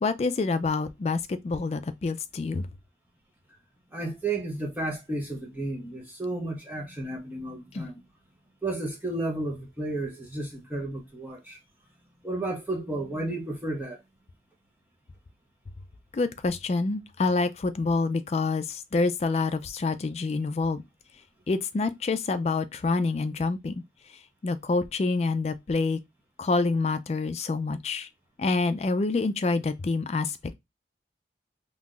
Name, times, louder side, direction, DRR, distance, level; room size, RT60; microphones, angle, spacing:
voice 1, 0.0-2.7 7.7-7.9 16.1-20.8 21.5-23.8 24.4-26.0 26.4-28.1 28.4-30.5, left 3 dB, 35° left, 0.3 m, -27 dB
voice 2, 3.9-7.9 8.6-11.6 12.2-14.0, right 2 dB, 10° right, 0.7 m, -32 dB
2.7 x 2.4 x 3.8 m
head